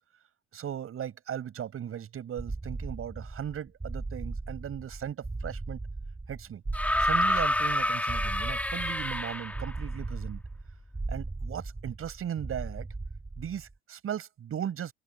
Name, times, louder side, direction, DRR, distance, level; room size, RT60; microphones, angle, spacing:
voice 1, 0.5-5.8 6.3-6.6 7.0-10.4 11.1-12.9 13.4-14.9, right 9 dB, 45° right, 7.3 m, -37 dB
sound 1, 2.4-13.7, right 3 dB, 15° right, 4.2 m, -38 dB
sound 2, 6.7-9.8 11.0-11.1, left 1 dB, 5° left, 2.4 m, -28 dB
supercardioid pair, 80°, 30 cm